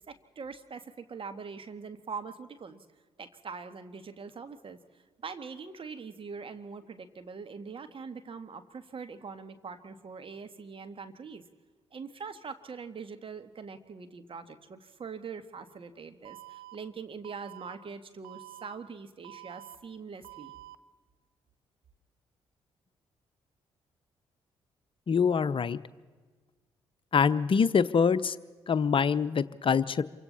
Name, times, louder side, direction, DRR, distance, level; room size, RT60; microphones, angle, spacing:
voice 1, 0.0-2.9 3.2-11.4 11.9-20.5, right 5 dB, 45° right, 9 dB, 1.9 m, -43 dB
Alarm, 16.2-16.7 17.2-17.7 18.2-18.7 19.2-19.7 20.2-20.7, right 18 dB, 75° right, 0.7 m, -48 dB
voice 2, 25.1-25.8 27.1-28.4 28.7-30.0, left 6 dB, 45° left, 15 dB, 0.8 m, -25 dB
28.0 x 24.5 x 4.2 m, 1.4 s
hypercardioid pair, 45°, 13 cm